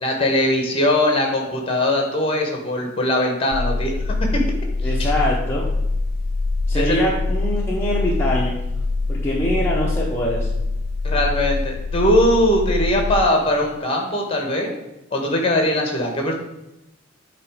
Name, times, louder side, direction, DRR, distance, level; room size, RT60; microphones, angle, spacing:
voice 1, 0.0-4.4 5.0-5.1 6.7-7.1 11.0-14.7 15.1-16.3, left 1 dB, 30° left, 2 dB, 1.2 m, -20 dB
sound 1, 3.5-13.2, left 3 dB, 55° left, 0.3 m, -24 dB
voice 2, 4.8-5.7 6.7-8.6 9.1-10.5, equal, 10° left, -6 dB, 0.8 m, -23 dB
8.0 x 3.1 x 4.9 m, 0.91 s
head